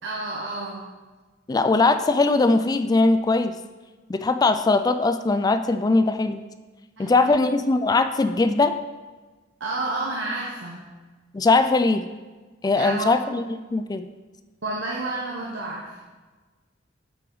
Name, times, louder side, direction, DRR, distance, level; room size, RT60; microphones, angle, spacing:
voice 1, 0.0-0.9 7.0-7.5 9.6-10.8 12.8-13.1 14.6-16.1, right 2 dB, 65° right, -3 dB, 1.1 m, -30 dB
voice 2, 1.5-3.5 4.1-6.4 7.0-8.7 11.3-12.1 12.6-13.4 13.7-14.1, left 3 dB, 20° left, 10 dB, 0.3 m, -20 dB
7.9 x 5.7 x 3.9 m, 1.3 s
head